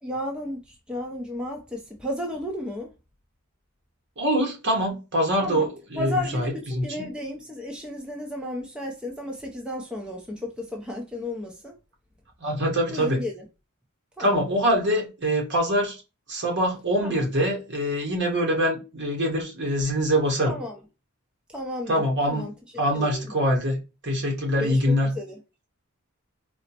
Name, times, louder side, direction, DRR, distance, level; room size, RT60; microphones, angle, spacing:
voice 1, 0.0-2.9 5.4-5.7 6.0-11.7 12.9-13.4 14.2-14.3 17.0-17.2 20.5-20.8 21.5-23.3 24.6-25.3, left 1 dB, 5° right, 0.5 m, -33 dB
voice 2, 4.2-7.1 12.4-13.2 14.2-16.0 16.3-20.6 21.9-22.5 22.8-23.8 24.0-25.1, equal, 55° right, 1.2 m, -24 dB
4.1 x 2.0 x 2.8 m
head